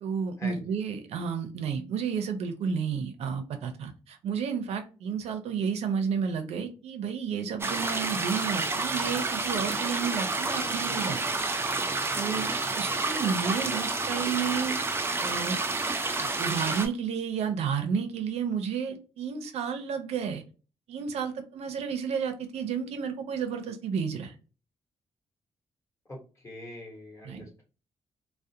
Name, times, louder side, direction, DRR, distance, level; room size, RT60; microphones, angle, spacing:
voice 1, 0.0-11.2 12.1-14.8 15.2-15.6 16.2-20.4 20.9-24.3 27.2-27.5, right 6 dB, 90° right, 7 dB, 0.4 m, -31 dB
sound 1, 7.6-16.9, right 3 dB, 25° right, 0.3 m, -29 dB
voice 2, 13.5-13.9 26.1-27.6, left 1 dB, 25° left, -1 dB, 1.1 m, -43 dB
2.4 x 2.0 x 2.7 m, 0.35 s
cardioid pair, 125°, 10 cm